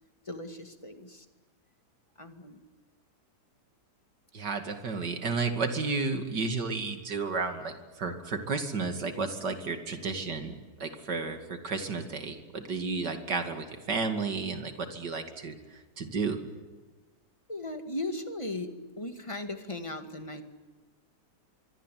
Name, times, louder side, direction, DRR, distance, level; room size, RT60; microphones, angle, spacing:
voice 1, 0.3-1.3 2.2-2.6 17.5-20.4, left 2 dB, 20° left, 6 dB, 2.1 m, -37 dB
voice 2, 4.3-10.5 10.8-15.6 16.0-16.4, right 4 dB, 75° right, 6 dB, 3.0 m, -32 dB
25.0 x 23.0 x 9.3 m, 1.3 s
omnidirectional pair, 1.8 m